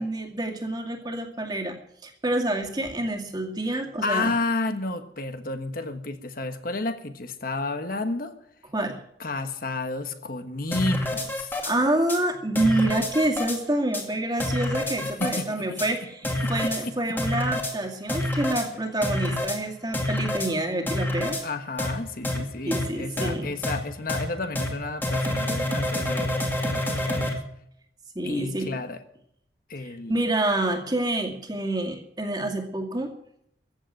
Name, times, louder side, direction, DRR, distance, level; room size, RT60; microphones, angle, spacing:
voice 1, 0.0-1.8 2.0-4.3 8.7-9.0 11.6-21.4 22.6-23.5 28.2-28.7 29.8-33.1, right 1 dB, 25° right, 3 dB, 2.2 m, -27 dB
voice 2, 3.7-8.3 9.2-11.6 15.0-15.6 16.4-16.9 17.3-17.4 21.4-27.4 28.2-29.0 29.7-30.1, left 2 dB, 55° left, 8 dB, 1.3 m, -31 dB
sound 1, 10.7-11.7 12.1-12.2 12.6-13.6 13.9-14.0 14.4-15.4 15.8-15.9 16.2-16.8 17.2-17.7 18.1-18.7 19.0-19.6 19.9-20.5 20.9-21.4 21.8-21.9 22.2-22.4 22.7-22.8 23.2-23.3 23.6-23.8 24.1-24.2 24.6-24.7 25.0-27.3, left 1 dB, 10° left, 2.3 m, -27 dB
15.0 x 8.0 x 8.9 m, 0.71 s
head